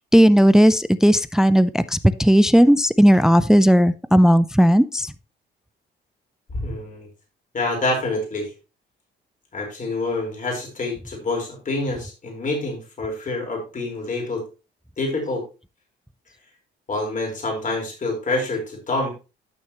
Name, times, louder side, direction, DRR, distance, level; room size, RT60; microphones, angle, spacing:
voice 1, 0.1-5.1, equal, 5° right, 15 dB, 0.4 m, -15 dB
voice 2, 6.5-7.1 7.5-8.5 9.5-14.4 15.0-15.4 16.9-19.1, left 2 dB, 40° left, 1 dB, 4.5 m, -27 dB
12.5 x 6.4 x 3.0 m, 0.30 s
cardioid pair, 90°, 20 cm